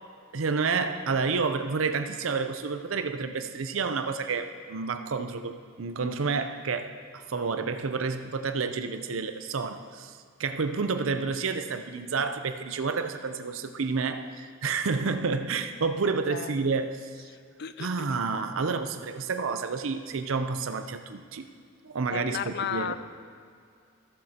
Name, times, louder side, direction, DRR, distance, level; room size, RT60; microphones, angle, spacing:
voice 1, 0.3-17.1 17.8-21.5 21.8-23.0, right 4 dB, 75° right, 8 dB, 0.6 m, -30 dB
voice 2, 16.1-16.6 17.3-18.2 22.1-23.0, left 7 dB, 55° left, 12 dB, 0.4 m, -35 dB
14.5 x 7.5 x 2.9 m, 2.3 s
head